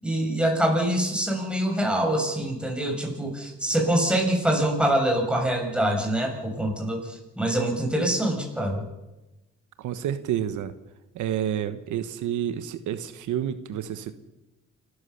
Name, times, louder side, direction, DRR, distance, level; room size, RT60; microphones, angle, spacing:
voice 1, 0.0-7.0 7.4-8.8, right 1 dB, 5° right, 1 dB, 6.4 m, -24 dB
voice 2, 9.8-10.7 11.1-14.1, right 10 dB, 80° right, 10 dB, 1.3 m, -29 dB
28.0 x 13.5 x 7.0 m, 1.0 s
cardioid pair, 90°, 30 cm